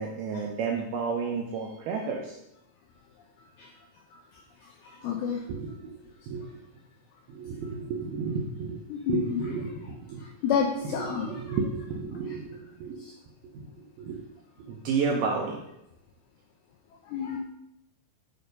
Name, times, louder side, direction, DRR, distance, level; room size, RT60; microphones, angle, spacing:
voice 1, 0.0-2.4 5.5-5.9 6.3-6.4 7.3-8.8 9.1-10.2 10.8-13.0 14.0-14.2 14.6-15.6, right 5 dB, 80° right, 0 dB, 2.2 m, -32 dB
voice 2, 5.0-5.4 8.9-9.4 10.4-11.4 17.1-17.4, left 7 dB, 90° left, 2 dB, 2.1 m, -28 dB
8.5 x 5.4 x 5.3 m, 0.82 s
omnidirectional pair, 5.5 m